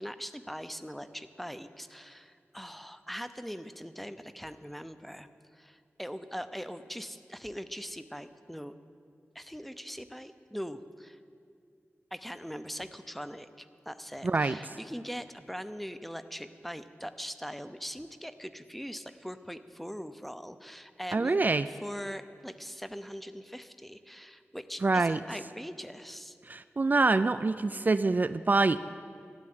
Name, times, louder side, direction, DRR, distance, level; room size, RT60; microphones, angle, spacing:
voice 1, 0.0-8.7 9.3-11.2 12.1-21.4 21.6-26.4, equal, 5° left, 11 dB, 0.6 m, -41 dB
voice 2, 14.2-14.8 21.1-21.7 24.8-25.2 26.5-28.8, right 3 dB, 40° right, 12 dB, 0.3 m, -26 dB
13.0 x 8.9 x 9.3 m, 2.3 s
wide cardioid pair, 85°, 5 cm